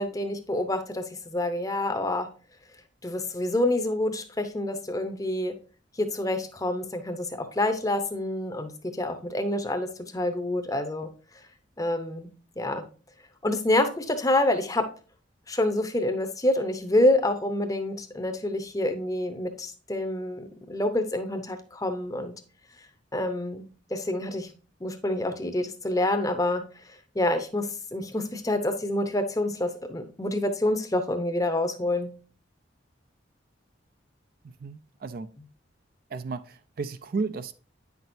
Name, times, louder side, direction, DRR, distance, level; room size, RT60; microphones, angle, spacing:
voice 1, 0.0-2.3 3.0-5.5 6.0-11.1 11.8-12.3 12.6-12.8 13.4-14.8 15.5-22.3 23.1-23.6 23.9-24.5 24.8-26.6 27.1-32.1, left 1 dB, 20° left, 0.7 m, -27 dB
voice 2, 34.4-35.3 36.1-37.5, right 4 dB, 50° right, 0.4 m, -33 dB
9.1 x 6.0 x 2.6 m
head